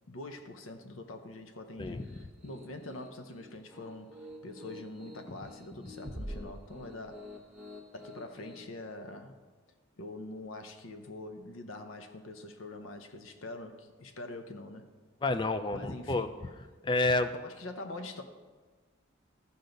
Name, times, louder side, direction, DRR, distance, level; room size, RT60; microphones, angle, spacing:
voice 1, 0.1-7.3 7.9-9.4 10.0-14.9 15.7-16.3 17.3-18.2, left 2 dB, 85° left, 7 dB, 0.8 m, -44 dB
Piano, 1.8-8.7, left 2 dB, 5° right, 0.9 m, -51 dB
sound 1, 6.0-7.8, right 1 dB, 35° right, 1.1 m, -43 dB
voice 2, 15.2-16.3 16.8-17.3, left 2 dB, 25° left, 11 dB, 0.4 m, -29 dB
14.0 x 5.5 x 3.9 m, 1.4 s
head